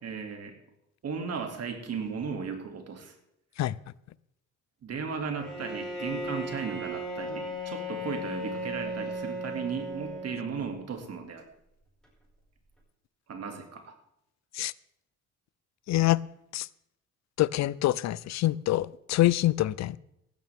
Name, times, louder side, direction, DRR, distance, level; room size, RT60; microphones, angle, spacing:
voice 1, 0.0-0.6 1.0-3.1 4.8-11.5 13.3-14.0, right 5 dB, 55° right, 2.5 m, -36 dB
Bowed string instrument, 5.4-10.8, equal, ahead, 5.3 m, -36 dB
voice 2, 15.9-16.2 16.5-16.7 17.4-20.0, left 15 dB, 65° left, 0.5 m, -25 dB
15.5 x 12.5 x 3.5 m
cardioid pair, 90°, 30 cm